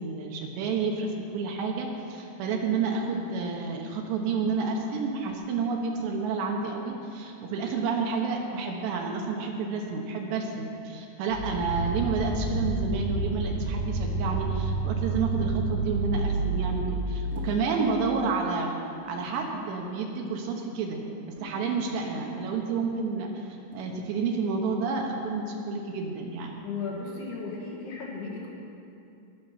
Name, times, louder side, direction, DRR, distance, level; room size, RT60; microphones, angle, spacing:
voice 1, 0.0-18.7 19.1-21.0 21.4-26.6, right 4 dB, 75° right, 1 dB, 3.0 m, -30 dB
sound 1, 11.3-17.1, right 3 dB, 50° left, 2.1 m, -29 dB
sound 2, 17.3-17.7 18.2-18.4 19.2-19.5 20.3-20.6 21.4-22.3 23.7-24.2, left 1 dB, 45° right, 0.9 m, -48 dB
voice 2, 26.6-28.5, left 4 dB, 65° left, -3 dB, 3.5 m, -35 dB
20.0 x 6.7 x 5.8 m, 2.6 s
omnidirectional pair, 5.4 m